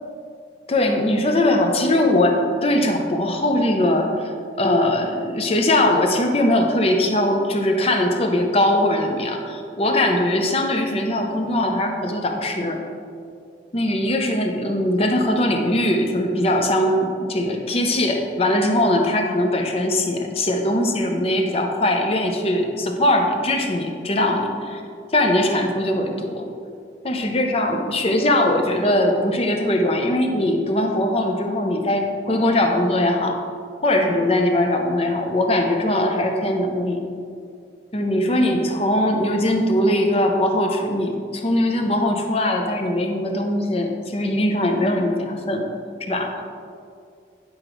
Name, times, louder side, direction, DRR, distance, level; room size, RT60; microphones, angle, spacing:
voice 1, 0.7-4.3 4.6-12.8 13.7-24.8 25.1-26.5 27.0-33.4 33.8-37.0 37.9-45.7 46.1-46.3, left 1 dB, 30° left, 3 dB, 0.6 m, -21 dB
9.4 x 4.9 x 3.0 m, 2.3 s
head